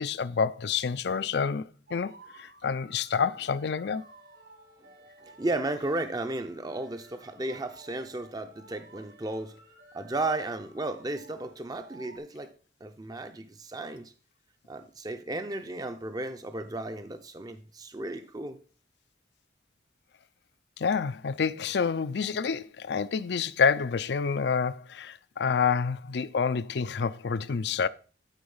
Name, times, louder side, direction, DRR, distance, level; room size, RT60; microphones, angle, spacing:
voice 1, 0.0-4.0 20.8-27.9, left 6 dB, 60° left, 0.5 m, -28 dB
sound 1, 1.9-12.2, right 1 dB, 65° right, 1.8 m, -54 dB
voice 2, 5.2-9.6 9.9-12.5 12.8-14.1 14.7-18.6, right 2 dB, 20° right, 0.5 m, -34 dB
12.0 x 4.0 x 5.5 m
head